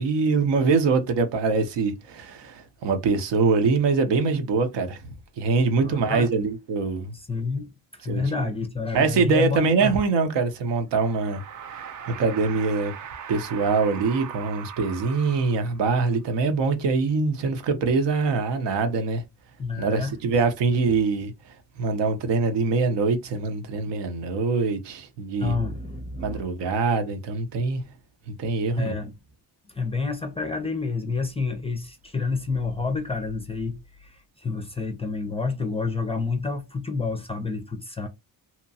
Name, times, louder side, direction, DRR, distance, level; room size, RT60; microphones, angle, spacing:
voice 1, 0.0-5.0 5.4-7.1 8.1-8.2 8.9-11.4 11.7-12.9 13.3-19.2 19.8-21.3 21.8-25.5 26.2-27.8 28.3-29.0, right 4 dB, 80° right, 0.7 m, -24 dB
voice 2, 5.8-6.3 7.1-10.0 19.6-20.2 25.4-26.5 28.8-29.1 29.7-38.1, left 4 dB, 15° left, 0.4 m, -29 dB
sound 1, 10.9-16.0, right 8 dB, 45° right, 0.4 m, -40 dB
2.8 x 2.2 x 2.6 m
cardioid pair, 110°, 43 cm